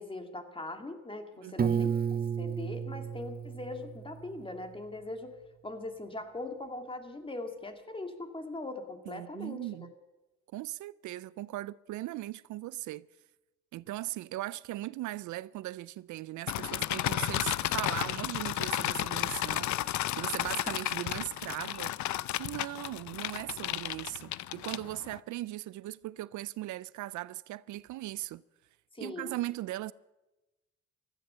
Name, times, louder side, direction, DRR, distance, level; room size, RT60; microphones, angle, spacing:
voice 1, 0.0-2.0 2.4-5.3 5.6-9.6 28.9-29.4, left 2 dB, 15° left, 2.3 m, -41 dB
voice 2, 1.4-2.0 9.1-9.9 10.5-13.1 13.7-21.9 22.4-28.4 29.0-29.9, right 16 dB, 75° right, 0.5 m, -39 dB
Piano, 1.6-4.5, right 7 dB, 30° right, 0.6 m, -32 dB
sound 1, 16.5-25.2, left 14 dB, 70° left, 0.6 m, -33 dB
15.5 x 13.5 x 6.8 m
cardioid pair, 90°, 30 cm